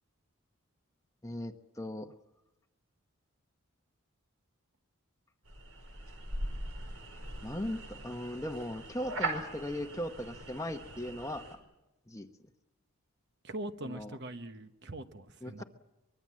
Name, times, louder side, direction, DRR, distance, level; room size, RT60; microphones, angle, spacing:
voice 1, 1.2-2.1 7.4-11.6 12.1-12.3 13.8-14.2 15.4-15.6, left 1 dB, 15° left, 6 dB, 1.0 m, -38 dB
sound 1, 5.4-11.5, right 2 dB, 75° right, 5.1 m, -40 dB
voice 2, 13.4-15.6, right 1 dB, 50° right, 9 dB, 1.1 m, -42 dB
24.0 x 22.0 x 7.6 m, 0.99 s
head